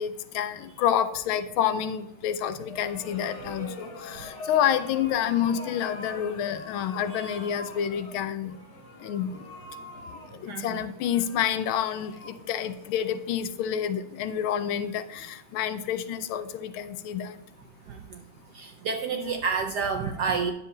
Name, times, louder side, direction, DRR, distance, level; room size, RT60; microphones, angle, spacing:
voice 1, 0.0-8.5 9.0-9.3 10.4-17.4 19.1-19.4, left 9 dB, 75° left, 11 dB, 1.4 m, -28 dB
sound 1, 2.6-13.6, left 2 dB, 45° left, 0.9 m, -44 dB
voice 2, 10.5-10.8 17.9-18.2 18.5-20.5, right 5 dB, 70° right, 5 dB, 1.0 m, -30 dB
10.0 x 7.2 x 2.6 m, 0.87 s
omnidirectional pair, 2.4 m